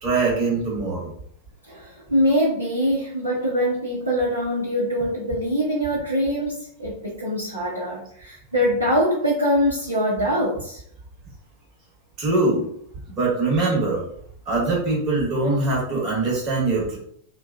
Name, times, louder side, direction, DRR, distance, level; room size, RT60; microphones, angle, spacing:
voice 1, 0.0-1.1 12.2-12.7 13.1-14.0 14.4-17.0, right 3 dB, 35° right, -4 dB, 1.3 m, -22 dB
voice 2, 1.7-10.8, equal, 80° right, -7 dB, 0.7 m, -23 dB
2.6 x 2.2 x 2.3 m, 0.67 s
figure-of-eight pair, 90°, 0 cm